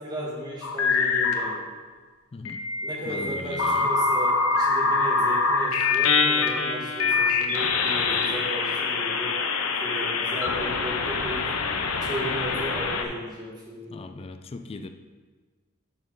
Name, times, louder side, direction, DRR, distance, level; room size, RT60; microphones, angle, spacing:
voice 1, 0.0-1.6 2.8-9.3 9.8-11.5 11.9-13.9, equal, 20° right, -4 dB, 1.7 m, -35 dB
sound 1, 0.6-1.6 2.4-13.0, left 4 dB, 70° left, 0.7 m, -25 dB
voice 2, 2.3-2.6 3.0-3.9 13.9-14.9, left 3 dB, 25° left, 8 dB, 0.3 m, -39 dB
11.5 x 4.3 x 3.8 m, 1.4 s
head